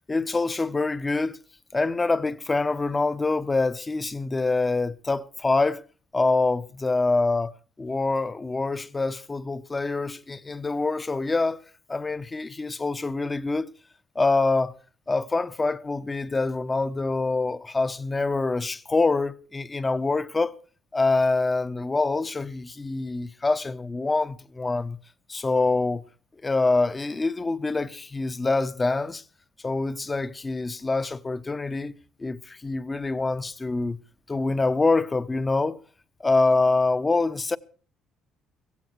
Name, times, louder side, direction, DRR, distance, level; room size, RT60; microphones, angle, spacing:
voice 1, 0.1-1.4 1.7-5.8 6.1-7.5 7.8-11.6 11.9-13.7 14.1-14.8 15.1-20.5 20.9-25.0 25.3-26.0 26.4-29.2 29.6-34.0 34.3-35.8 36.2-37.6, left 3 dB, 25° left, 0.9 m, -25 dB
16.0 x 16.0 x 4.6 m
supercardioid pair, 80°, 0 cm